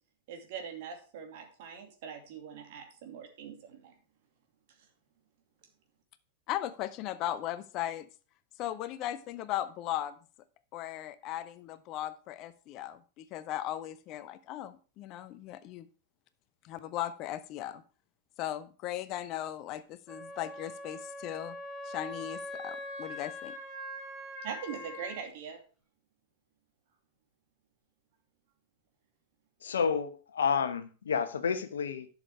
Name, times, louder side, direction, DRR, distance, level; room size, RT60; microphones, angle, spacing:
voice 1, 0.3-4.0 24.4-25.6, right 7 dB, 50° right, 2.5 m, -42 dB
voice 2, 6.5-8.1 8.6-10.2 10.7-15.9 16.6-17.8 18.4-21.6 21.8-23.5, left 12 dB, 40° left, 0.7 m, -37 dB
Wind instrument woodwind instrument, 20.1-25.2, left 1 dB, ahead, 6.5 m, -42 dB
voice 3, 29.6-32.1, left 6 dB, 65° left, 1.1 m, -30 dB
11.5 x 6.6 x 4.8 m
figure-of-eight pair, 90°, 0 cm